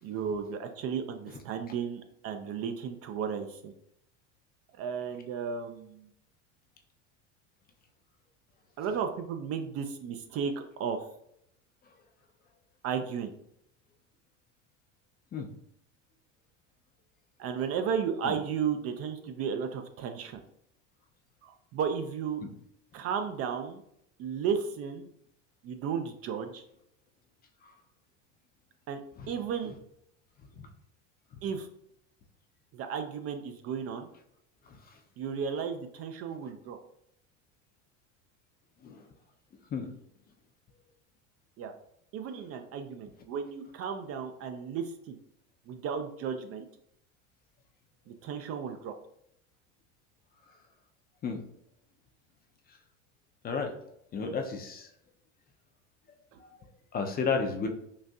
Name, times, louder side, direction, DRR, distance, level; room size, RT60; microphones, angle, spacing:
voice 1, 0.0-3.7 4.8-6.1 8.8-11.0 12.8-13.3 17.4-20.4 21.4-22.4 22.9-23.8 24.2-25.1 25.6-26.6 28.9-29.0 29.3-29.8 31.4-31.7 32.7-34.1 35.2-36.8 41.6-41.7 42.1-45.2 45.7-46.7 48.1-48.9, right 7 dB, 40° right, 7 dB, 0.4 m, -34 dB
voice 2, 54.1-54.9 56.4-56.5 56.9-57.7, left 5 dB, 25° left, 4 dB, 0.4 m, -32 dB
3.9 x 2.6 x 2.3 m, 0.75 s
hypercardioid pair, 90°, 37 cm